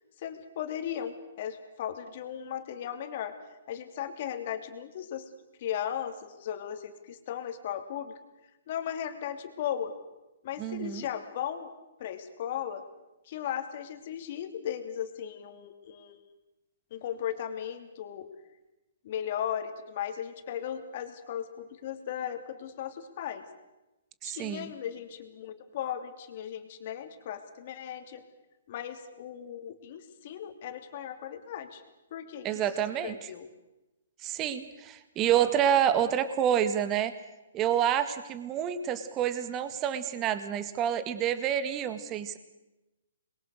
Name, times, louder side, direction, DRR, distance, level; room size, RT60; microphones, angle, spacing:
voice 1, 0.2-3.3 3.7-5.2 5.6-8.1 8.7-10.0 10.4-11.7 12.0-12.8 13.3-16.2 16.9-18.3 19.0-23.4 24.2-28.2 28.7-31.8 32.1-32.5 33.0-33.4, left 9 dB, 45° left, 8 dB, 2.9 m, -36 dB
voice 2, 10.6-11.0 24.2-24.7 32.4-33.3 34.2-37.1 37.5-42.4, right 10 dB, 20° right, 12 dB, 1.8 m, -28 dB
27.0 x 21.5 x 6.6 m, 1.0 s
hypercardioid pair, 150°, 0 cm